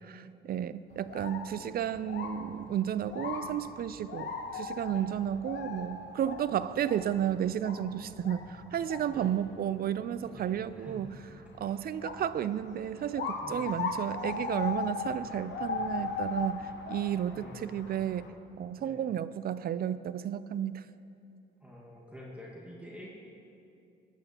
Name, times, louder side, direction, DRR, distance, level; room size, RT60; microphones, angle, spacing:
voice 1, 0.0-11.1 11.6-18.3 18.6-20.9, right 10 dB, 50° right, 15 dB, 0.4 m, -32 dB
sound 1, 0.9-18.3, left 4 dB, 60° left, 1.1 m, -39 dB
voice 2, 10.2-11.0 11.6-11.7 13.0-13.1 13.4-13.7 17.3-17.9 18.8-19.1 21.6-23.2, equal, 5° right, -4 dB, 1.7 m, -48 dB
18.0 x 9.0 x 2.9 m, 2.6 s
cardioid pair, 90°, 20 cm